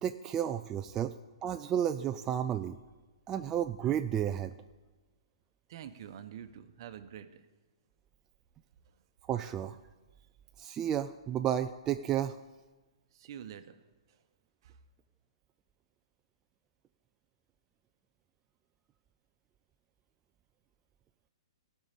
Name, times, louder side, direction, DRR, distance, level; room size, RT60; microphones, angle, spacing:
voice 1, 0.0-1.2 1.4-2.8 3.3-4.5 9.3-9.8 10.6-12.4, right 10 dB, 20° right, 7 dB, 0.3 m, -32 dB
voice 2, 5.7-7.5 8.9-9.0 10.2-10.3 13.1-13.8 14.1-14.2 14.6-14.8, right 9 dB, 50° right, 10 dB, 0.9 m, -47 dB
15.0 x 5.5 x 8.3 m, 1.2 s
hypercardioid pair, 140°, 3 cm